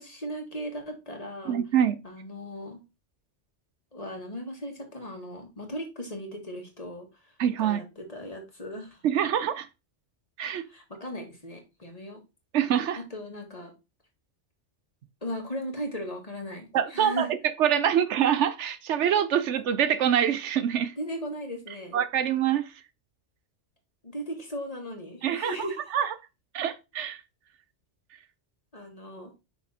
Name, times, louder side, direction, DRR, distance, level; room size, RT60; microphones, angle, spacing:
voice 1, 0.0-1.6 2.0-2.8 3.9-7.3 7.6-9.0 10.5-12.2 13.0-13.7 15.2-17.3 21.0-22.0 24.0-25.8 28.7-29.3, equal, 35° left, 1.9 m, -37 dB
voice 2, 1.5-2.0 7.4-7.8 9.0-9.7 10.4-10.6 12.5-13.0 16.7-20.9 21.9-22.6 25.2-25.6 25.9-26.1 26.5-27.2, right 9 dB, 75° right, 1.0 m, -25 dB
5.9 x 5.2 x 4.1 m
omnidirectional pair, 1.2 m